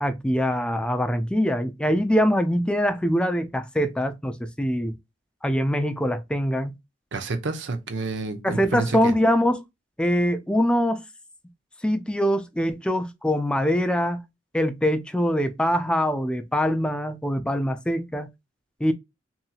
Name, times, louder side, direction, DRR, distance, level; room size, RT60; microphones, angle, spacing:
voice 1, 0.0-5.0 5.4-6.7 8.4-9.6 10.0-11.0 11.8-14.2 14.5-18.3 18.8-18.9, equal, 5° left, 0.3 m, -23 dB
voice 2, 7.1-9.1, right 3 dB, 80° right, 0.6 m, -29 dB
2.7 x 2.7 x 2.3 m
head